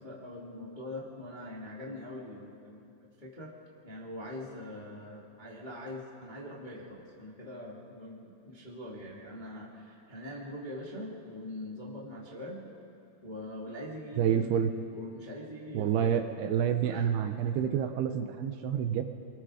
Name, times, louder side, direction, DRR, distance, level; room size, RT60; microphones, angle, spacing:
voice 1, 0.0-3.5 3.8-12.6 13.2-14.6 14.9-16.3 16.9-17.1, left 1 dB, 20° left, -4 dB, 1.2 m, -43 dB
voice 2, 14.2-14.7 15.7-19.0, right 9 dB, 75° right, 7 dB, 2.6 m, -28 dB
26.5 x 21.5 x 4.9 m, 2.6 s
omnidirectional pair, 4.9 m